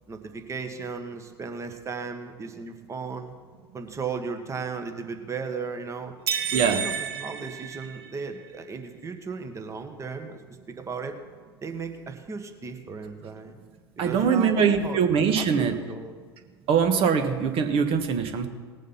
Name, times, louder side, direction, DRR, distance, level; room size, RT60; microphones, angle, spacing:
voice 1, 0.1-3.3 3.7-6.1 6.5-10.4 10.7-11.2 11.6-13.5 14.0-15.0 15.3-16.1, right 5 dB, 20° right, 6 dB, 1.6 m, -35 dB
sound 1, 6.3-8.4, right 8 dB, 70° right, 1.0 m, -31 dB
voice 2, 14.0-15.8 16.7-18.5, right 6 dB, 45° right, 6 dB, 1.6 m, -22 dB
18.5 x 7.3 x 5.8 m, 1.5 s
hypercardioid pair, 85°, 13 cm